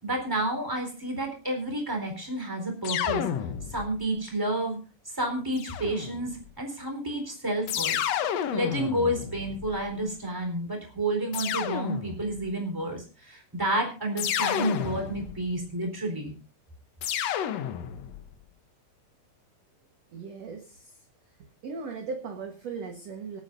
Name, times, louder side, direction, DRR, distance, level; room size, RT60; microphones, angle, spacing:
voice 1, 0.0-3.2 3.7-4.8 5.1-8.0 8.5-16.3, right 1 dB, 5° right, 3 dB, 3.7 m, -30 dB
sound 1, 2.8-4.0 5.6-6.4 7.7-10.0 11.3-12.4 14.2-15.5 17.0-18.2, left 9 dB, 70° left, 1.5 m, -31 dB
voice 2, 20.1-20.9 21.6-23.4, right 5 dB, 55° right, 4 dB, 2.2 m, -37 dB
26.5 x 9.2 x 2.6 m, 0.33 s
omnidirectional pair, 4.1 m